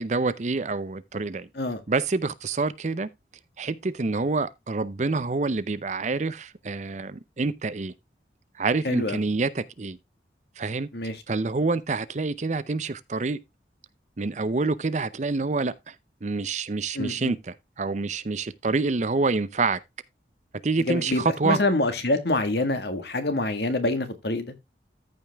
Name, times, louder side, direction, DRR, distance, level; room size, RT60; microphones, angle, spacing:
voice 1, 0.0-1.5 1.9-3.1 3.6-7.9 8.6-10.0 10.6-10.9 11.3-13.4 14.2-15.9 16.2-19.8 20.6-21.6, right 3 dB, 40° right, 0.6 m, -27 dB
voice 2, 8.8-9.2 10.9-11.2 17.0-17.3 20.9-24.5, left 2 dB, 60° left, 1.7 m, -26 dB
14.0 x 5.3 x 3.4 m
head